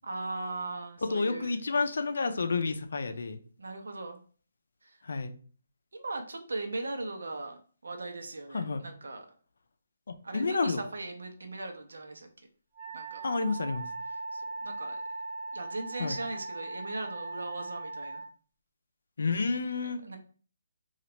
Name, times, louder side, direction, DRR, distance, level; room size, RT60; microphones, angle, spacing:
voice 1, 0.0-1.5 3.6-4.2 4.8-5.0 5.9-7.6 7.8-9.3 10.2-12.3 12.9-13.2 14.3-15.0 15.5-18.2 19.8-20.2, right 2 dB, 85° right, 4 dB, 0.7 m, -39 dB
voice 2, 1.0-3.4 5.0-5.3 8.5-8.8 10.1-10.8 13.2-13.9 16.0-16.2 19.2-20.0, left 4 dB, 75° left, 8 dB, 0.4 m, -30 dB
Wind instrument woodwind instrument, 12.7-18.3, right 3 dB, 35° right, 0.8 m, -39 dB
3.0 x 2.4 x 2.9 m, 0.41 s
hypercardioid pair, 155°, 0 cm